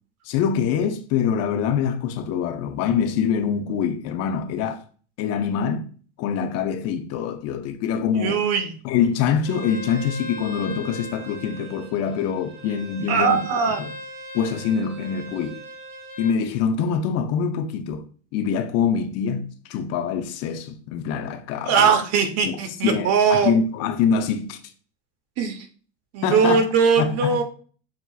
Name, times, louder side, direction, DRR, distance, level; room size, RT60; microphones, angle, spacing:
voice 1, 0.2-4.8 5.2-5.8 6.2-8.4 8.8-13.9 14.3-15.6 16.2-18.0 18.3-21.9 22.4-22.6 22.8-24.6 26.2-26.6 27.0-27.4, left 7 dB, 45° left, 0.6 m, -24 dB
voice 2, 8.2-8.7 13.1-13.8 21.6-23.5 25.4-25.7 26.1-27.4, right 6 dB, 45° right, 1.0 m, -20 dB
Bowed string instrument, 9.4-16.4, equal, 70° right, 1.9 m, -39 dB
7.0 x 2.9 x 2.4 m
supercardioid pair, 120°, 35 cm